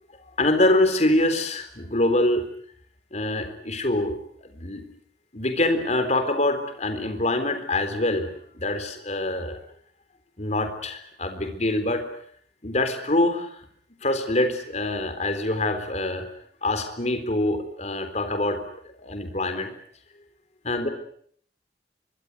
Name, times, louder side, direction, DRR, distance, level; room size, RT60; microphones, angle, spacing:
voice 1, 0.4-2.4 3.1-4.8 5.3-9.6 10.4-12.1 12.6-13.6 14.0-16.3 16.6-19.7 20.6-20.9, left 1 dB, 40° left, 8 dB, 3.8 m, -25 dB
25.0 x 24.0 x 8.4 m, 0.63 s
head